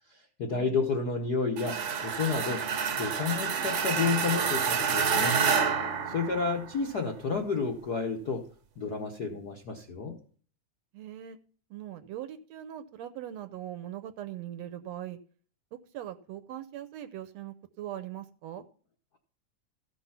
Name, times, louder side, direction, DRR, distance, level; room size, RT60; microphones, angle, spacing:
voice 1, 0.1-2.7 3.0-5.4 6.1-8.5 8.8-10.1, left 4 dB, 60° left, 2 dB, 1.0 m, -31 dB
sound 1, 1.6-6.8, right 6 dB, 55° right, 1.5 m, -28 dB
voice 2, 10.9-11.4 11.7-15.2 15.7-18.6, right 11 dB, 75° right, 10 dB, 1.7 m, -41 dB
15.0 x 6.0 x 5.8 m, 0.42 s
omnidirectional pair, 3.4 m